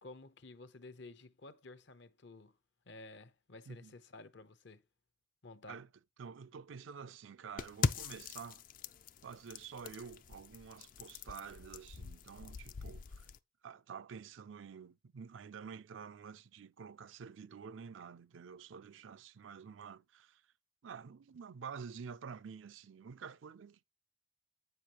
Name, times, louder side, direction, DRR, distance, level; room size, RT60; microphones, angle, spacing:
voice 1, 0.0-2.6 2.9-4.8 5.4-5.8, left 2 dB, 65° left, 0.7 m, -53 dB
voice 2, 6.2-8.6 9.2-13.3 13.6-20.4 20.8-23.8, right 6 dB, 80° right, 0.4 m, -49 dB
sound 1, 7.6-13.4, left 5 dB, 40° left, 0.3 m, -41 dB
8.1 x 6.6 x 2.9 m
head